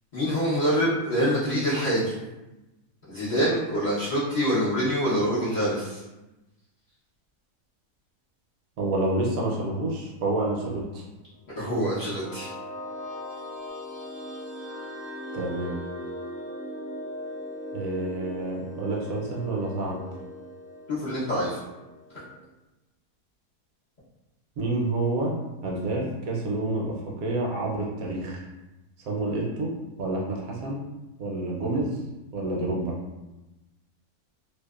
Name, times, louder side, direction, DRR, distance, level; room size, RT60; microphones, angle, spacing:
voice 1, 0.1-2.1 3.1-6.0 11.6-12.5 20.9-21.6 22.1-22.2, equal, 75° left, -12 dB, 0.4 m, -25 dB
voice 2, 8.8-11.0 15.3-15.7 17.7-20.0 24.6-25.3 25.6-28.4 29.1-30.8 31.2-32.0 32.3-32.9, right 2 dB, 70° right, -3 dB, 0.9 m, -28 dB
sound 1, 11.5-22.4, left 1 dB, 35° right, 0.4 m, -39 dB
2.7 x 2.0 x 2.3 m, 1.0 s
omnidirectional pair, 1.7 m